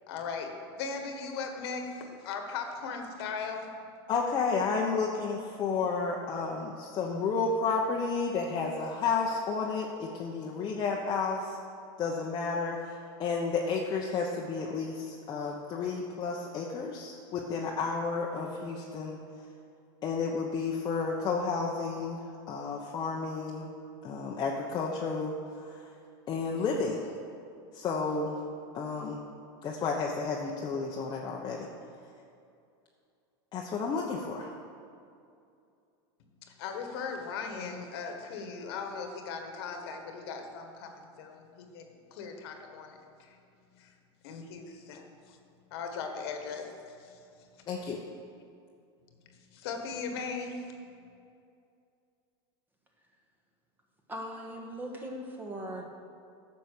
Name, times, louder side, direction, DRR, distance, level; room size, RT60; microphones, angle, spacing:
voice 1, 0.1-3.7 36.5-43.4 43.8-43.9 44.2-45.4 45.7-47.2 49.5-50.7, left 5 dB, 70° left, 4 dB, 1.6 m, -38 dB
voice 2, 4.1-11.6 12.0-19.2 20.0-23.7 24.0-25.8 26.3-27.1 27.7-28.3 28.7-29.2 29.6-31.7 33.5-34.5 47.7-48.0, left 4 dB, 30° left, -1 dB, 1.0 m, -32 dB
voice 3, 54.1-55.9, equal, 15° right, 1 dB, 1.7 m, -39 dB
10.0 x 6.8 x 6.7 m, 2.5 s
supercardioid pair, 130°, 14 cm